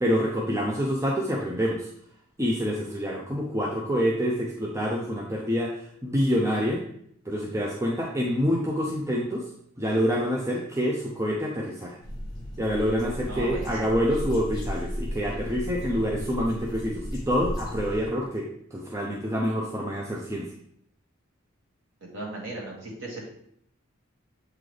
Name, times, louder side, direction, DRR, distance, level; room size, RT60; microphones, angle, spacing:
voice 1, 0.0-1.9 2.4-6.8 7.3-9.4 9.8-12.0 12.6-20.5, equal, 15° right, -2 dB, 0.5 m, -27 dB
sound 1, 12.0-18.1, equal, 20° left, 1.2 m, -35 dB
voice 2, 13.3-13.9 22.0-23.3, right 2 dB, 65° right, -3 dB, 1.9 m, -37 dB
7.9 x 3.9 x 3.2 m, 0.68 s
head